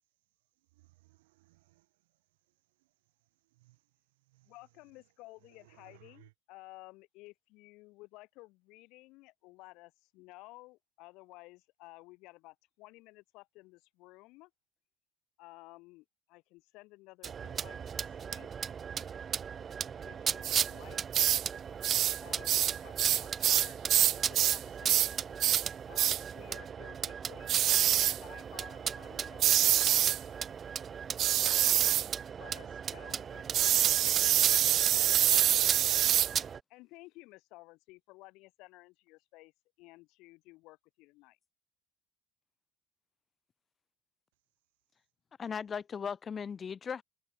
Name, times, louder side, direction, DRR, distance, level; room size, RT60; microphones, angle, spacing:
voice 1, 0.7-1.9 2.8-2.9 3.5-3.8 4.2-4.5 5.4-6.3, right 20 dB, 80° right, 6.3 m, -63 dB
voice 2, 4.5-14.5 15.4-18.7 20.0-21.3 22.2-25.3 25.9-27.6 27.8-30.2 31.2-31.9 32.3-36.0 36.7-39.5 39.8-41.4, left 22 dB, 65° left, 7.1 m, -55 dB
sound 1, 17.2-36.6, right 7 dB, 35° right, 4.2 m, -37 dB
sound 2, 20.4-20.7 21.1-21.5 21.8-22.2 22.5-24.6 24.9-25.1 25.4-25.7 26.0-26.2 27.5-28.2 29.4-30.2 31.2-32.1 33.5-36.3, right 12 dB, 55° right, 0.3 m, -26 dB
voice 3, 45.4-47.0, left 6 dB, 35° left, 2.3 m, -37 dB
hypercardioid pair, 75°, 0 cm